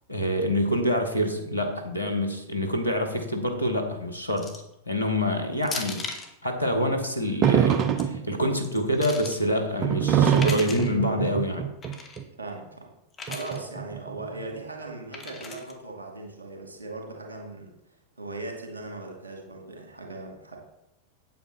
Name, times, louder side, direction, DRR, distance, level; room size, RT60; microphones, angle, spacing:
voice 1, 0.1-6.1 6.4-11.7, equal, 90° left, 4 dB, 1.6 m, -26 dB
sound 1, 4.4-4.7 5.6-6.3 7.7-8.0 8.6-9.4 10.2-10.9 11.8-12.2 13.1-13.6 15.1-15.7, left 4 dB, 20° left, 1.6 m, -37 dB
Bol lancé et qui roule sur bois, 7.4-8.4 9.8-12.2 13.3-14.2, right 8 dB, 35° right, 0.9 m, -23 dB
voice 2, 12.4-12.9 13.3-17.7 18.2-20.6, right 2 dB, 75° right, 1 dB, 2.4 m, -38 dB
8.5 x 8.5 x 4.3 m, 0.87 s
figure-of-eight pair, 90°, 0 cm